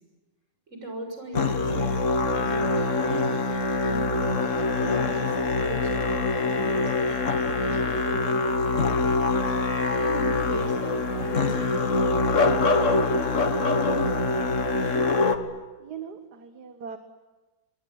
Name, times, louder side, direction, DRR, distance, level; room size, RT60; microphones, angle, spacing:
voice 1, 0.7-3.4 3.8-4.3 4.7-9.1 10.0-12.7, right 1 dB, 40° right, 4 dB, 6.9 m, -38 dB
Musical instrument, 1.3-15.4, left 3 dB, 45° left, 1.8 m, -24 dB
voice 2, 15.8-17.0, right 7 dB, 60° right, 7 dB, 1.9 m, -39 dB
27.5 x 22.5 x 9.4 m, 1.2 s
omnidirectional pair, 2.0 m